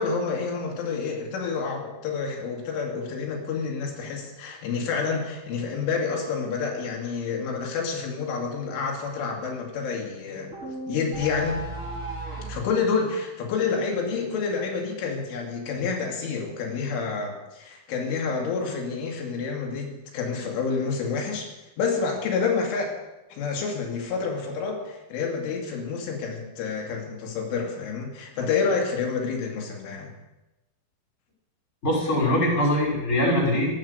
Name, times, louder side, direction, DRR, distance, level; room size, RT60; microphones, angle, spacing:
voice 1, 0.0-10.5 10.9-11.6 12.5-21.5 21.8-22.9 23.3-30.1, left 5 dB, 80° left, 0 dB, 4.7 m, -28 dB
sound 1, 10.5-12.7, right 1 dB, 15° right, 4.5 m, -34 dB
voice 2, 31.8-33.7, left 1 dB, 15° left, -2 dB, 5.3 m, -22 dB
14.5 x 13.0 x 6.7 m, 1.0 s
omnidirectional pair, 5.5 m